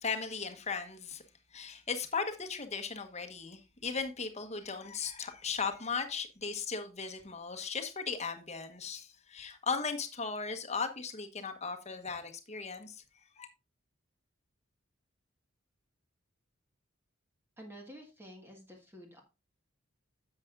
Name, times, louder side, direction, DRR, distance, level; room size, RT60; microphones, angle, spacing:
voice 1, 0.0-1.2 1.5-13.0 13.4-13.5, left 5 dB, 35° left, 1.2 m, -37 dB
voice 2, 17.6-19.2, equal, 10° right, 1.6 m, -50 dB
10.5 x 7.8 x 2.5 m
head